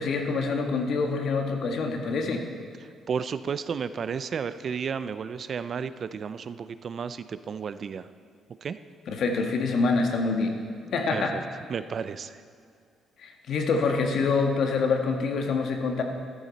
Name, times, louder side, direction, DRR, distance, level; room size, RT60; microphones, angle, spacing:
voice 1, 0.0-2.5 9.1-10.6 10.9-11.4 13.2-16.0, left 4 dB, 60° left, 4 dB, 1.5 m, -26 dB
voice 2, 2.8-8.1 8.6-8.8 11.1-11.4 11.7-12.4, right 6 dB, 45° right, 13 dB, 0.4 m, -33 dB
14.0 x 13.5 x 4.1 m, 2.3 s
cardioid pair, 115°, 0 cm